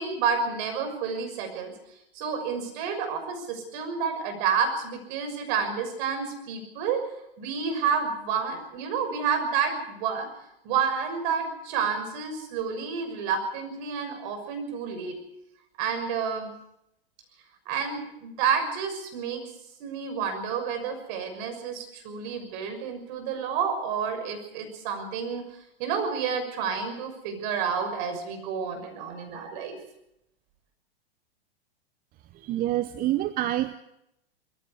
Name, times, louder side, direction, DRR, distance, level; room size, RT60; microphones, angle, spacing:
voice 1, 0.0-1.7 2.1-7.0 7.4-10.3 10.6-15.2 15.8-16.5 17.7-19.4 19.8-25.4 25.8-29.7, right 6 dB, 50° right, 6 dB, 6.3 m, -29 dB
voice 2, 32.4-33.8, right 14 dB, 30° right, 12 dB, 0.8 m, -27 dB
21.5 x 15.5 x 8.1 m, 0.82 s
hypercardioid pair, 110°, 31 cm